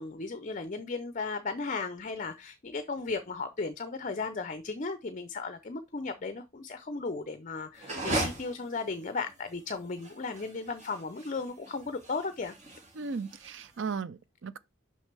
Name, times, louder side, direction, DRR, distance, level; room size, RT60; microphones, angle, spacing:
voice 1, 0.0-12.5, left 4 dB, 40° left, 0.5 m, -35 dB
sound 1, 7.7-13.9, right 1 dB, 35° right, 2.1 m, -38 dB
voice 2, 13.0-14.6, right 5 dB, 65° right, 0.5 m, -36 dB
6.2 x 5.8 x 3.3 m
head